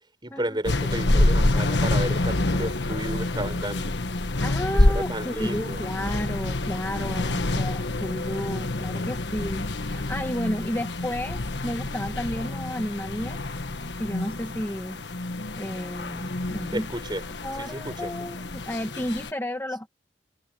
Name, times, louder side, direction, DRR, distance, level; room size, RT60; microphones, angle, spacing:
voice 1, 0.2-3.9 4.7-5.8 16.7-17.3 17.6-18.1, right 1 dB, 25° right, 6.8 m, -32 dB
sound 1, 0.6-19.3, left 2 dB, 75° left, 1.4 m, -27 dB
voice 2, 4.4-13.4 14.0-15.0 15.6-16.9 17.4-19.9, left 1 dB, 15° left, 1.3 m, -32 dB
head